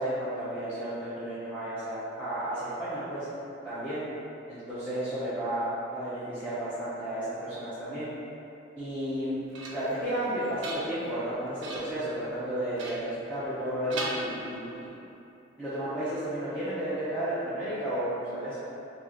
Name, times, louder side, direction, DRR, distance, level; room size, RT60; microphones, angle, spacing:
voice 1, 0.0-3.3 3.6-4.0 4.5-8.1 8.8-9.4 9.7-14.9 15.6-18.6, right 1 dB, 5° left, -15 dB, 0.6 m, -32 dB
sound 1, 9.0-10.0 10.4-11.2 11.6-12.0 12.8-13.6 13.9-14.9, right 2 dB, 70° right, 0.5 m, -39 dB
2.9 x 2.4 x 3.8 m, 2.9 s
head